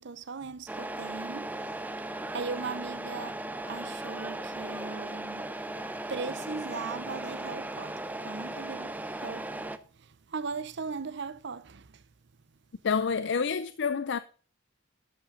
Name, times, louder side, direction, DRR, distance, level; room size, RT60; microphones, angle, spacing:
voice 1, 0.0-1.8 2.3-3.4 3.7-5.4 6.1-9.7 10.0-12.0, right 4 dB, 60° right, 0.7 m, -39 dB
Truck, 0.7-9.8, right 1 dB, 10° right, 0.6 m, -37 dB
voice 2, 12.8-14.2, left 5 dB, 60° left, 0.5 m, -28 dB
12.0 x 8.4 x 3.8 m
head